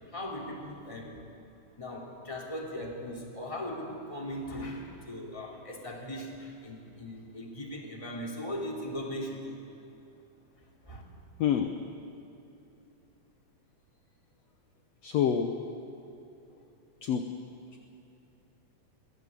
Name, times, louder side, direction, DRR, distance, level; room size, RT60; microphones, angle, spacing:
voice 1, 0.1-1.2 1.8-9.6 10.9-11.0, left 1 dB, 10° left, -2 dB, 2.7 m, -39 dB
voice 2, 11.4-11.7 15.0-15.5 17.0-17.2, left 8 dB, 65° left, 6 dB, 1.8 m, -26 dB
23.0 x 16.0 x 8.4 m, 2.8 s
omnidirectional pair, 3.6 m